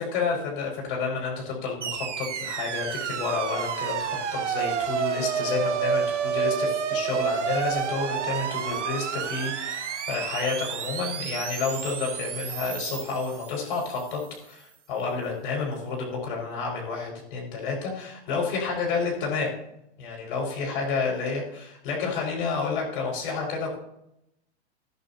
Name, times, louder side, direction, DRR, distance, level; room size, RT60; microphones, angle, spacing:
voice 1, 0.0-19.5 20.0-23.8, left 4 dB, 50° left, -1 dB, 5.5 m, -30 dB
sound 1, 1.8-14.1, right 7 dB, 85° right, 1.6 m, -30 dB
16.0 x 10.5 x 2.9 m, 0.80 s
hypercardioid pair, 155°, 34 cm